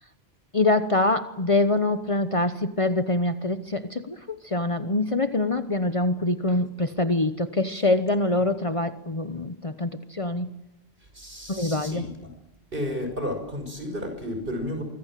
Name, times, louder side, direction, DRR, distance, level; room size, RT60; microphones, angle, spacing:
voice 1, 0.5-10.5 11.5-12.0, left 2 dB, 35° left, 10 dB, 1.1 m, -25 dB
voice 2, 11.1-12.1 12.7-14.8, left 1 dB, 60° right, 6 dB, 6.0 m, -32 dB
25.0 x 24.5 x 7.6 m, 0.86 s
omnidirectional pair, 1.0 m